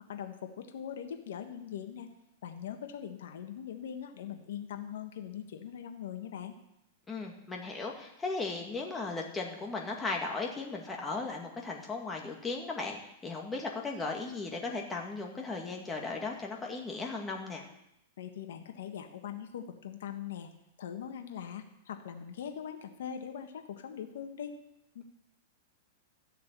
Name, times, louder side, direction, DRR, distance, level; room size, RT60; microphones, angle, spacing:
voice 1, 0.1-2.1 2.4-6.5 18.2-20.5 20.8-24.6 24.9-25.0, left 9 dB, 80° left, 6 dB, 1.5 m, -41 dB
voice 2, 7.1-17.6, left 3 dB, 15° left, 0 dB, 2.2 m, -36 dB
14.0 x 6.8 x 8.3 m, 0.83 s
hypercardioid pair, 140°, 0 cm